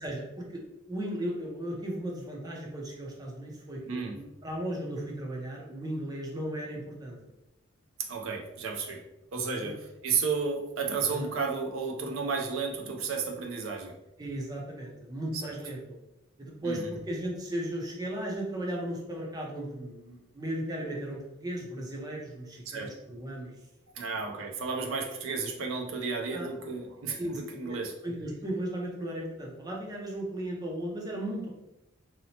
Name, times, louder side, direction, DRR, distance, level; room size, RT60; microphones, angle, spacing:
voice 1, 0.0-0.6 0.9-7.2 9.6-9.7 11.0-11.3 14.2-16.0 16.4-23.5 26.3-26.5 27.2-31.5, right 1 dB, 20° right, -2 dB, 0.5 m, -36 dB
voice 2, 3.9-4.2 8.1-9.0 9.3-9.8 10.0-13.9 15.4-15.5 16.6-16.9 22.7-22.9 23.9-27.9, right 5 dB, 70° right, 2 dB, 0.5 m, -32 dB
2.8 x 2.0 x 2.7 m, 0.91 s
head